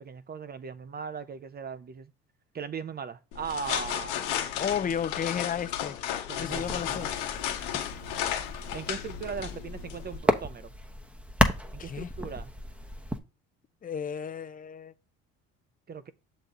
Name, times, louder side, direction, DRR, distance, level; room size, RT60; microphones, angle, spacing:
voice 1, 0.0-2.1 2.5-4.7 6.3-10.7 11.7-12.5 15.9-16.1, right 6 dB, 30° right, 0.7 m, -39 dB
sound 1, 3.3-10.2, left 10 dB, 85° left, 1.1 m, -34 dB
voice 2, 4.6-6.0 6.4-7.1 11.8-12.1 13.8-14.9, left 8 dB, 30° left, 0.5 m, -32 dB
sound 2, 6.5-13.2, equal, 5° right, 0.9 m, -32 dB
6.8 x 4.1 x 3.8 m
supercardioid pair, 90°, 30 cm